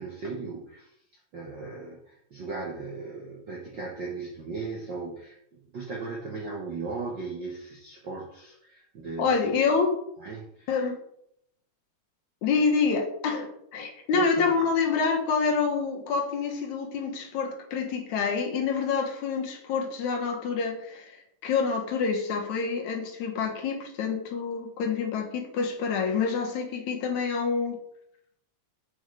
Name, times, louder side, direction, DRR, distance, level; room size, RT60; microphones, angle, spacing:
voice 1, 0.0-5.4 5.7-9.3 10.2-10.7 14.1-14.6, right 4 dB, 60° right, -2 dB, 1.2 m, -36 dB
voice 2, 9.2-10.0 10.7-11.0 12.4-27.8, left 5 dB, 65° left, 2 dB, 2.4 m, -27 dB
8.0 x 5.4 x 4.7 m, 0.72 s
omnidirectional pair, 3.7 m